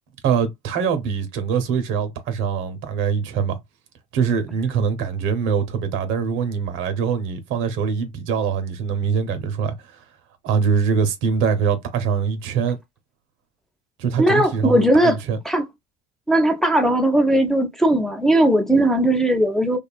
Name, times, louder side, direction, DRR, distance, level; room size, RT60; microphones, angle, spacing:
voice 1, 0.2-3.6 4.1-10.0 10.4-12.8 14.0-15.4, right 6 dB, 70° right, 0.7 m, -23 dB
voice 2, 14.2-15.2 15.4-15.6 16.3-19.8, right 1 dB, ahead, 0.6 m, -18 dB
2.7 x 2.3 x 2.2 m
supercardioid pair, 80°, 21 cm